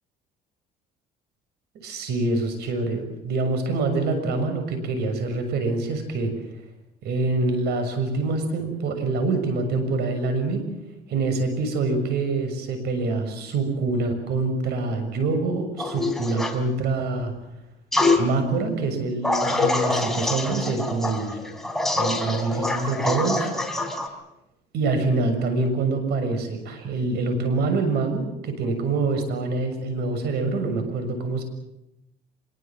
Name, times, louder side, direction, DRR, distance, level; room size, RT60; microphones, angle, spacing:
voice 1, 1.7-6.3 7.0-10.7 11.1-17.3 18.2-21.4 21.9-23.5 24.7-31.4, right 3 dB, 75° right, 7 dB, 6.6 m, -25 dB
sound 1, 15.8-16.6 17.9-18.2 19.2-24.1, left 2 dB, ahead, 3.8 m, -25 dB
25.5 x 22.5 x 7.6 m, 0.86 s
cardioid pair, 110°, 17 cm